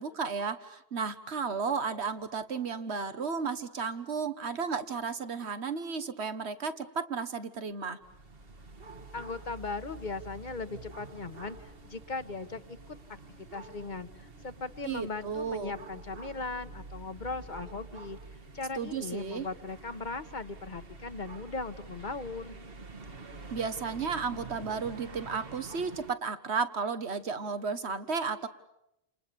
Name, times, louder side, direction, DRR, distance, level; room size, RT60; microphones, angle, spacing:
voice 1, 0.0-8.0 14.8-15.8 18.8-19.5 23.5-28.5, right 5 dB, 80° right, 11 dB, 1.7 m, -33 dB
Dog barking in a sketchy neighborhood, 8.0-26.1, right 3 dB, 65° right, 1.9 m, -47 dB
voice 2, 9.1-13.2 13.5-18.2 18.5-22.6, left 3 dB, 45° left, 11 dB, 1.5 m, -38 dB
29.5 x 28.5 x 7.0 m, 0.84 s
omnidirectional pair, 1.1 m